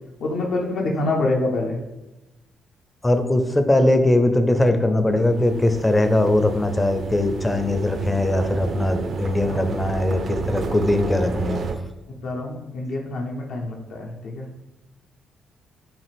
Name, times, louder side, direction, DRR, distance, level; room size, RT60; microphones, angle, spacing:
voice 1, 0.2-1.8 9.5-9.6 12.2-14.5, left 2 dB, 70° left, 0 dB, 0.7 m, -26 dB
voice 2, 3.0-11.6, left 1 dB, 15° left, 8 dB, 0.5 m, -20 dB
sound 1, 5.2-11.8, right 4 dB, 55° right, 0.4 m, -31 dB
5.7 x 2.5 x 3.4 m, 1.0 s
cardioid pair, 90°, 0 cm